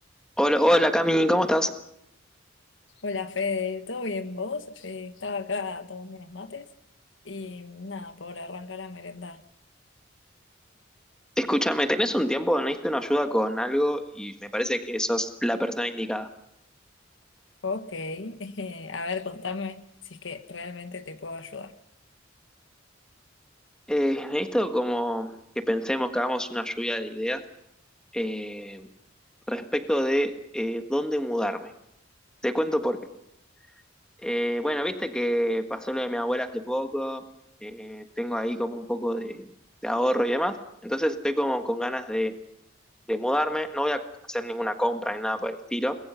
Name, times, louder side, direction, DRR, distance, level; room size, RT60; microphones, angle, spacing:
voice 1, 0.4-1.7 11.4-16.3 23.9-27.4 28.1-28.9 29.5-31.7 32.4-33.0 34.2-37.2 37.6-39.5 39.8-40.6 40.8-42.3 43.1-46.0, equal, 5° left, 1.5 m, -26 dB
voice 2, 3.0-6.7 7.2-9.4 17.6-21.7, left 4 dB, 75° left, 1.4 m, -34 dB
30.0 x 21.0 x 5.7 m
head